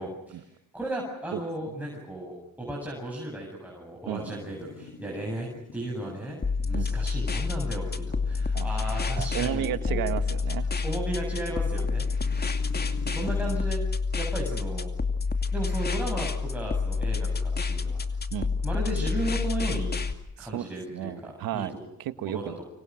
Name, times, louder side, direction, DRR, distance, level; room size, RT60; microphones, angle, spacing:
voice 1, 0.0-10.1 10.8-12.1 12.5-14.9 15.5-18.0 18.6-20.0 20.4-21.8 22.2-22.6, right 1 dB, 5° right, -2 dB, 8.0 m, -35 dB
voice 2, 1.3-1.7 4.1-4.4 6.7-6.9 8.5-8.7 9.1-10.7 18.3-18.5 20.4-22.5, right 12 dB, 75° right, 11 dB, 1.7 m, -33 dB
sound 1, 4.1-13.6, left 3 dB, 45° left, 3.9 m, -47 dB
sound 2, 6.4-20.1, left 4 dB, 25° left, 2.5 m, -28 dB
29.5 x 26.0 x 6.4 m, 0.84 s
supercardioid pair, 70°, 35 cm